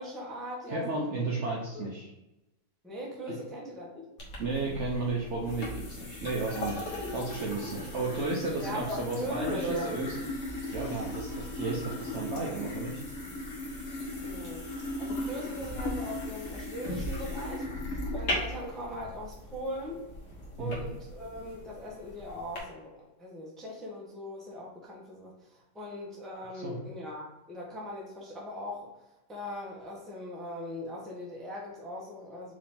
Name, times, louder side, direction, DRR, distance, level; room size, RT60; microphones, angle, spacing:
voice 1, 0.0-1.2 1.7-1.9 2.8-4.0 8.6-10.1 14.2-20.0 20.6-28.9 29.3-32.5, left 1 dB, ahead, -4 dB, 0.7 m, -40 dB
voice 2, 0.7-2.1 3.3-3.4 4.4-10.2 10.7-13.0 20.6-20.8 26.6-26.8, right 3 dB, 60° right, -2 dB, 0.8 m, -33 dB
sound 1, 4.2-22.6, left 1 dB, 60° left, 1.6 m, -37 dB
4.8 x 2.8 x 3.6 m, 0.95 s
omnidirectional pair, 1.8 m